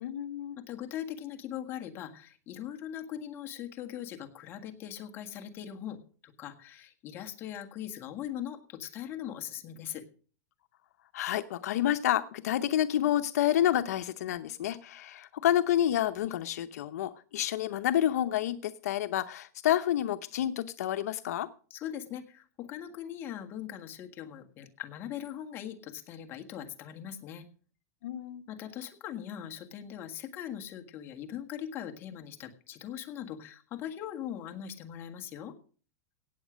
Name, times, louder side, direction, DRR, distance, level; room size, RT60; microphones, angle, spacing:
voice 1, 0.0-0.6 11.1-21.5 28.0-28.4, left 11 dB, 70° left, 11 dB, 0.8 m, -29 dB
voice 2, 0.7-10.0 21.7-27.5 28.5-35.5, left 10 dB, 25° left, 4 dB, 1.6 m, -40 dB
17.5 x 7.4 x 6.3 m, 0.41 s
supercardioid pair, 160°, 9 cm